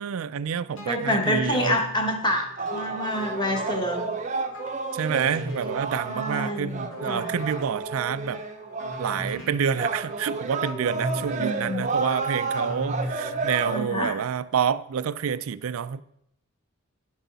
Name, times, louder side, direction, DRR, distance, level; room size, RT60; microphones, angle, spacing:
voice 1, 0.0-1.8 4.9-8.4 9.0-16.0, right 7 dB, 75° right, 0.4 m, -28 dB
sound 1, 0.8-13.7, equal, 65° left, 2.3 m, -39 dB
voice 2, 0.9-4.1 6.1-7.3 9.4-9.5 11.4-11.8 13.7-14.1, equal, 20° left, 1.4 m, -27 dB
sound 2, 2.6-9.4 9.7-13.8, right 4 dB, 35° right, 0.7 m, -31 dB
10.5 x 8.1 x 4.0 m
head